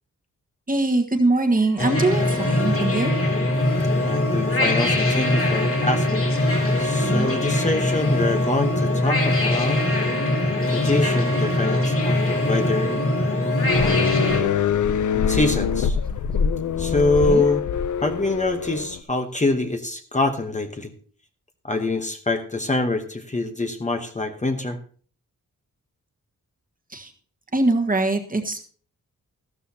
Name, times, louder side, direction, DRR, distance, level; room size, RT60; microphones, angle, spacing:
voice 1, 0.7-3.1 7.0-7.3 17.3-17.5 26.9-27.1 27.5-28.6, right 2 dB, 25° right, 4 dB, 1.5 m, -22 dB
sound 1, 1.8-14.4, left 1 dB, 40° left, 3.2 m, -22 dB
voice 2, 4.0-6.2 6.8-9.8 10.7-13.1 13.8-16.0 16.8-17.6 18.0-20.9 21.6-24.8, left 2 dB, 25° left, 5 dB, 1.0 m, -25 dB
sound 2, 13.7-19.0, left 7 dB, 70° left, 0.7 m, -24 dB
14.0 x 12.5 x 2.8 m, 0.43 s
wide cardioid pair, 125°, 32 cm